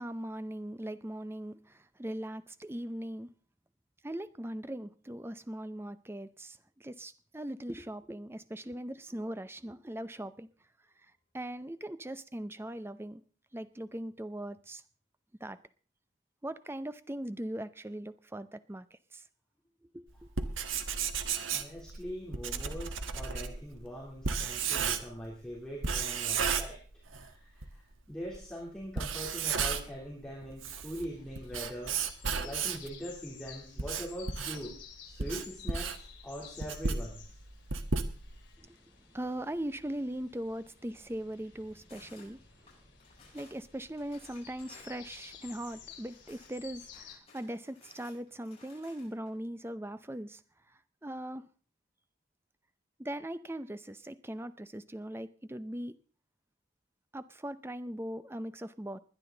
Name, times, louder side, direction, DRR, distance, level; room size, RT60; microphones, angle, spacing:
voice 1, 0.0-3.3 4.0-10.5 11.3-13.2 13.5-14.8 15.4-15.6 16.4-18.8 19.1-19.2 19.9-20.1 38.6-38.8 39.1-42.4 43.3-50.4 51.0-51.4 53.0-55.9 57.1-59.0, right 1 dB, 10° right, 0.5 m, -40 dB
Writing, 20.2-25.3 25.8-27.3 27.6-27.7 28.3-28.4 28.9-30.0 30.4-32.9 33.5-38.5, right 5 dB, 80° right, 1.2 m, -33 dB
voice 2, 20.4-20.8 21.5-26.8 27.2-27.8 28.1-37.4, equal, 5° left, 3.1 m, -42 dB
sound 1, 30.9-47.2, left 8 dB, 60° left, 2.7 m, -53 dB
sound 2, 41.9-42.3 42.7-43.6 44.0-46.5 46.8-49.3, left 4 dB, 30° left, 7.3 m, -58 dB
20.5 x 10.5 x 3.9 m
head